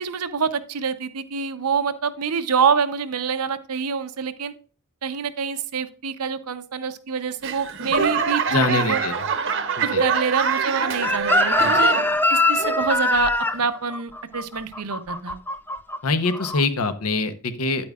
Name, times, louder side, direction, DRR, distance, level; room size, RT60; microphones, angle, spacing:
voice 1, 0.0-4.5 5.0-8.6 8.9-9.0 9.8-11.9 12.3-15.4, right 6 dB, 85° right, 11 dB, 0.7 m, -26 dB
Laughter / Clapping / Crowd, 7.4-12.2 12.5-13.1 13.6-13.7, right 5 dB, 60° right, 0.8 m, -24 dB
voice 2, 8.5-9.1 9.9-10.0 11.6-11.8 16.0-17.9, left 3 dB, 75° left, 11 dB, 0.8 m, -24 dB
Chicken rooster, 11.0-16.0 16.3-16.6, left 2 dB, 10° left, 0.3 m, -22 dB
9.4 x 8.6 x 2.4 m, 0.39 s
head